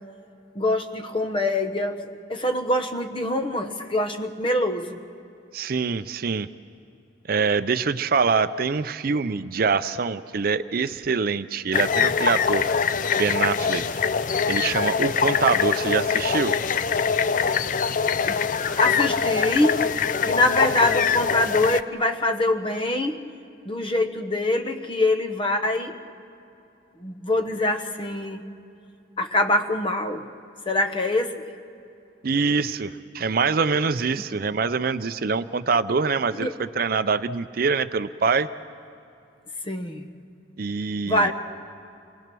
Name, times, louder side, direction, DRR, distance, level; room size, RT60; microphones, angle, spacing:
voice 1, 0.5-5.0 18.3-19.9 20.2-23.2 23.6-25.9 27.0-28.4 29.2-30.3 30.7-31.4 34.1-34.2 36.4-36.5 39.6-40.1 41.0-41.3, left 2 dB, 25° left, 6 dB, 1.0 m, -24 dB
voice 2, 5.5-6.5 7.3-12.7 13.1-14.0 14.5-16.5 32.2-38.5 40.6-41.3, right 5 dB, 50° right, 12 dB, 0.5 m, -24 dB
sound 1, 11.7-21.8, left 6 dB, 40° left, 0.4 m, -23 dB
27.5 x 20.5 x 6.1 m, 2.7 s
head